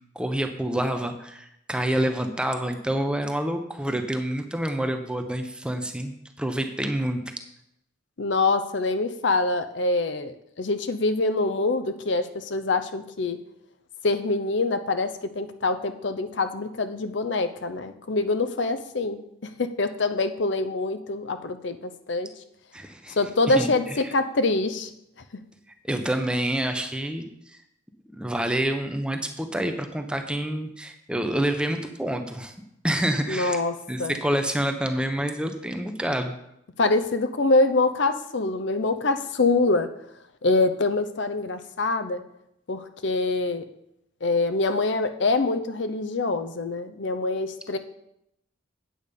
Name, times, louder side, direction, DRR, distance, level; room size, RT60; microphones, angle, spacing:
voice 1, 0.1-7.2 22.7-23.2 23.5-24.1 25.8-27.2 28.1-32.5 32.8-33.6 33.9-36.3, right 1 dB, 5° right, 6 dB, 0.8 m, -27 dB
voice 2, 8.2-13.4 14.0-19.2 19.6-22.3 23.2-24.9 33.3-33.7 34.0-34.1 36.8-39.9 40.4-42.2 42.7-43.6 44.2-47.8, left 3 dB, 65° left, 9 dB, 0.7 m, -25 dB
8.8 x 8.1 x 5.2 m, 0.78 s
head